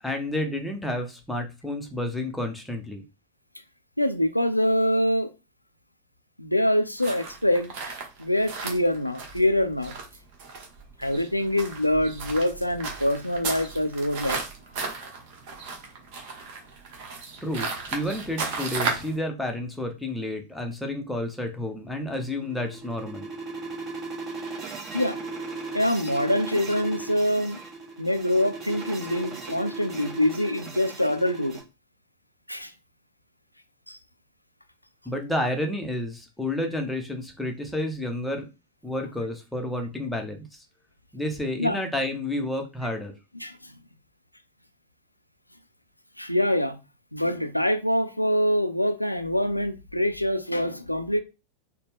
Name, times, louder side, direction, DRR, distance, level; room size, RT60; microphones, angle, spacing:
voice 1, 0.0-3.0 17.4-23.3 35.1-38.4 38.8-40.6 41.1-43.1, left 1 dB, 5° left, 0.8 m, -30 dB
voice 2, 4.0-5.3 6.4-7.7 8.2-10.0 11.0-14.4 24.9-25.2 25.7-27.6 28.0-31.6 32.5-32.7 33.9-34.0 41.6-41.8 43.4-43.6 46.2-46.8 47.1-51.2, left 1 dB, 90° left, 0.4 m, -25 dB
sound 1, 7.0-19.2, right 4 dB, 45° right, 1.0 m, -35 dB
sound 2, 22.3-31.6, right 4 dB, 25° right, 1.2 m, -37 dB
4.1 x 2.2 x 3.5 m
figure-of-eight pair, 90°, 0 cm